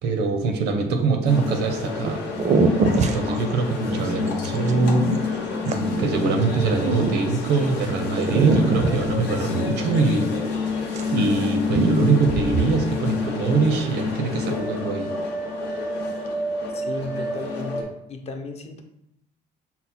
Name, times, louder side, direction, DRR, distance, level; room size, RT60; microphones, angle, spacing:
voice 1, 0.0-2.2 2.9-10.3 11.1-15.1, right 4 dB, 85° right, 5 dB, 0.7 m, -23 dB
sound 1, 0.9-1.4 2.1-2.2 2.4-7.7 8.2-10.6 10.9-11.4 11.7-12.7, right 3 dB, 45° right, 0.5 m, -25 dB
sound 2, 1.3-17.8, left 4 dB, 80° left, 0.9 m, -28 dB
voice 2, 16.7-18.8, left 2 dB, 40° left, 4 dB, 0.6 m, -34 dB
5.7 x 2.1 x 4.1 m, 0.80 s
cardioid pair, 110°, 17 cm